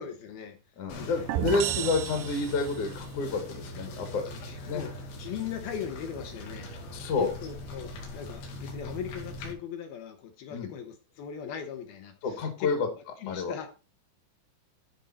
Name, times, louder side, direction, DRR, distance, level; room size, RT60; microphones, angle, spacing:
voice 1, 0.0-0.6 1.0-1.2 1.7-1.9 4.3-13.7, left 8 dB, 75° left, 2.3 m, -39 dB
voice 2, 0.8-4.8 6.9-7.3 10.5-10.7 12.2-12.9 13.3-13.5, left 4 dB, 55° left, 2.3 m, -29 dB
sound 1, 0.9-9.5, left 1 dB, 90° left, 4.7 m, -41 dB
sound 2, 1.3-3.0, right 12 dB, 90° right, 3.1 m, -32 dB
14.0 x 5.4 x 4.2 m
omnidirectional pair, 5.4 m